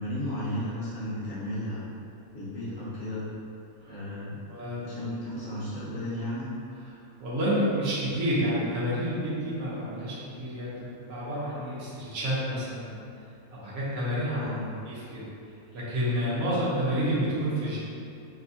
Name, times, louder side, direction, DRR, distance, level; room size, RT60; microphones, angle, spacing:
voice 1, 0.0-1.9 2.3-3.3 3.9-4.4 4.8-6.5 14.3-14.7, left 1 dB, 45° left, -11 dB, 1.1 m, -34 dB
voice 2, 4.5-4.9 7.2-13.0 13.5-14.5 14.9-15.3 15.7-17.8, equal, 75° right, -9 dB, 1.2 m, -29 dB
3.3 x 2.1 x 2.5 m, 2.6 s
omnidirectional pair, 1.6 m